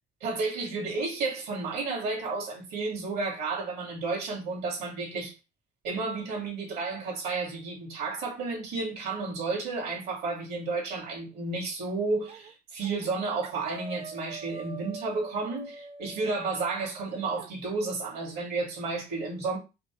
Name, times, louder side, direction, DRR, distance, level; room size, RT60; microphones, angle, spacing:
voice 1, 0.2-5.3 5.8-19.6, right 3 dB, 75° right, 2.2 m, -32 dB
sound 1, 12.3-12.5 12.8-13.1 13.4-17.5, right 4 dB, 35° right, 0.5 m, -44 dB
4.9 x 2.0 x 4.6 m
cardioid pair, 110°, 17 cm